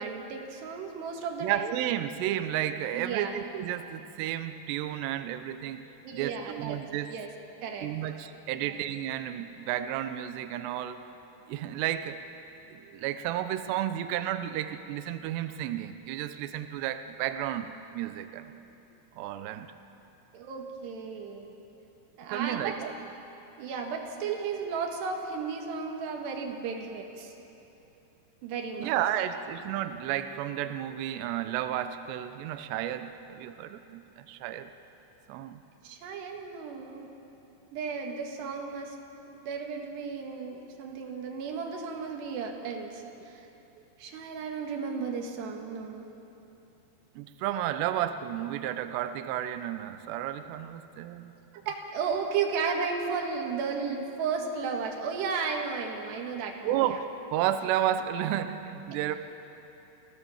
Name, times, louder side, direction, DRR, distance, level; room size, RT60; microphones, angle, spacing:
voice 1, 0.0-1.8 2.9-3.3 6.1-6.8 7.1-7.3 7.6-7.9 8.6-8.8 20.3-21.5 22.2-22.8 23.6-27.3 28.4-29.0 29.3-29.4 35.8-37.1 37.7-39.0 39.3-43.5 44.0-46.1 47.9-48.0 51.7-57.0, right 5 dB, 65° right, 2 dB, 3.5 m, -34 dB
voice 2, 1.4-5.8 6.1-7.1 7.8-11.0 11.5-12.2 12.7-18.5 19.2-19.7 22.3-22.9 28.8-34.7 35.3-35.6 47.2-51.4 56.7-59.2, right 11 dB, 90° right, 10 dB, 2.4 m, -32 dB
27.5 x 15.5 x 7.2 m, 3.0 s
omnidirectional pair, 5.9 m